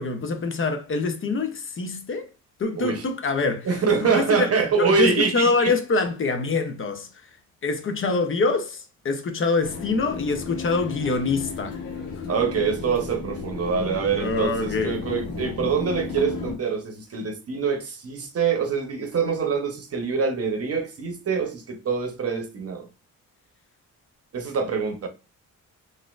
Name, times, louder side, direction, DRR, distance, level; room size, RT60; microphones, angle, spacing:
voice 1, 0.0-2.3 2.6-3.7 4.0-4.5 4.8-7.1 7.6-11.8 14.2-15.0, left 3 dB, 40° left, 0.6 m, -25 dB
voice 2, 3.7-5.7 12.3-22.9 24.3-25.1, right 5 dB, 50° right, 0.8 m, -25 dB
sound 1, 9.6-16.5, left 4 dB, 85° left, 1.0 m, -34 dB
4.0 x 2.5 x 2.4 m
cardioid pair, 115°, 32 cm